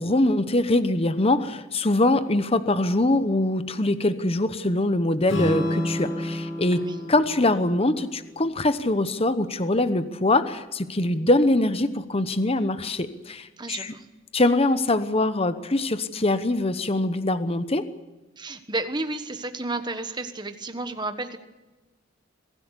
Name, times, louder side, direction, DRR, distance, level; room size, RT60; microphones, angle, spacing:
voice 1, 0.0-6.8 7.1-13.9 14.3-17.8, left 2 dB, 30° left, 12 dB, 1.0 m, -23 dB
Strum, 5.3-9.5, equal, 80° left, 7.4 m, -31 dB
voice 2, 13.6-14.1 18.4-21.4, right 2 dB, 20° right, 8 dB, 1.4 m, -32 dB
23.0 x 15.5 x 8.2 m, 1.1 s
head